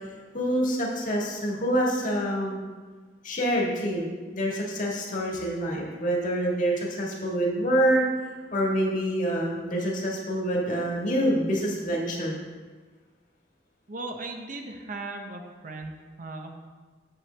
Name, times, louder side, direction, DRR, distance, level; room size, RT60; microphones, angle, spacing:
voice 1, 0.3-2.6 3.2-4.1 4.3-8.0 8.5-12.4, equal, 45° left, -3 dB, 1.6 m, -26 dB
voice 2, 13.9-16.5, right 2 dB, 50° right, 4 dB, 0.7 m, -37 dB
7.8 x 7.3 x 3.3 m, 1.4 s
head